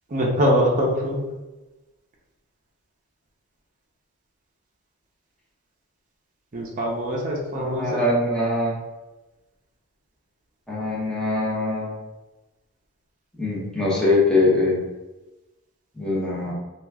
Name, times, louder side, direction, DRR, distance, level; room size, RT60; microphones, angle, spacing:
voice 1, 0.1-1.3 6.5-8.1, equal, 35° right, -2 dB, 0.6 m, -23 dB
voice 2, 7.5-8.8 10.7-12.0 13.4-14.8 16.0-16.5, left 2 dB, 5° left, -7 dB, 0.8 m, -22 dB
2.9 x 2.3 x 3.5 m, 1.1 s
head